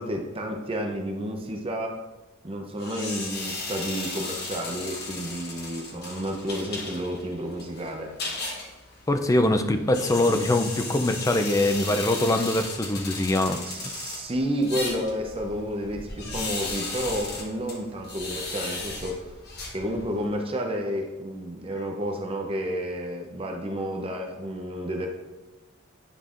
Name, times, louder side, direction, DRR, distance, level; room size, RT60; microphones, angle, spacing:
voice 1, 0.0-2.0 2.4-8.1 13.6-19.3 19.7-25.1, equal, 25° right, 2 dB, 0.6 m, -31 dB
sound 1, 2.8-20.3, left 3 dB, 50° left, 1.2 m, -36 dB
voice 2, 9.1-13.6, left 1 dB, 15° left, 7 dB, 0.3 m, -23 dB
9.8 x 5.3 x 2.5 m, 1.1 s
head